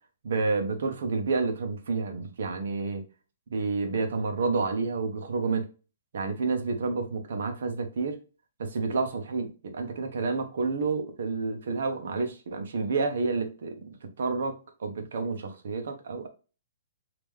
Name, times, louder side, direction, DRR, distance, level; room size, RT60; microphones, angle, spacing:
voice 1, 0.2-3.0 3.5-5.7 6.1-8.2 8.6-16.3, right 4 dB, 65° right, 1.0 m, -29 dB
3.7 x 2.9 x 3.2 m
hypercardioid pair, 170°, 0 cm